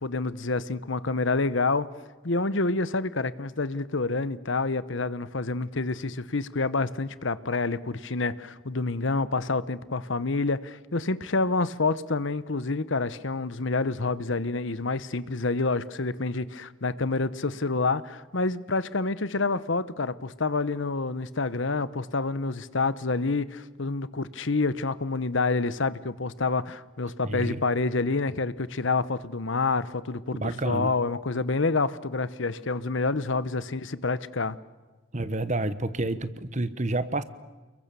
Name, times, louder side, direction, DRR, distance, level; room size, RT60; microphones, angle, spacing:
voice 1, 0.0-1.9 2.2-34.6, left 3 dB, 65° left, 16 dB, 1.0 m, -28 dB
voice 2, 27.2-27.6 30.4-30.9 35.1-37.2, right 2 dB, 35° right, 14 dB, 1.1 m, -29 dB
29.5 x 22.0 x 7.0 m, 1.3 s
head